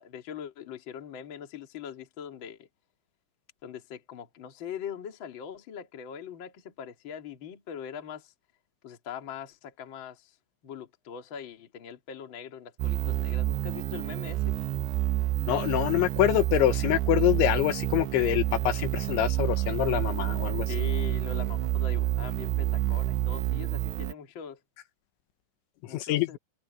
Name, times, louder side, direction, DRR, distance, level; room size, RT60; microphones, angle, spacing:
voice 1, 0.0-2.7 3.6-8.3 8.8-10.3 10.6-14.6 20.7-24.6 25.9-26.4, left 8 dB, 40° left, 2.0 m, -41 dB
sound 1, 12.8-24.1, right 15 dB, 85° right, 2.4 m, -29 dB
voice 2, 15.5-20.7 25.9-26.4, left 14 dB, 80° left, 3.3 m, -25 dB
omnidirectional pair, 5.5 m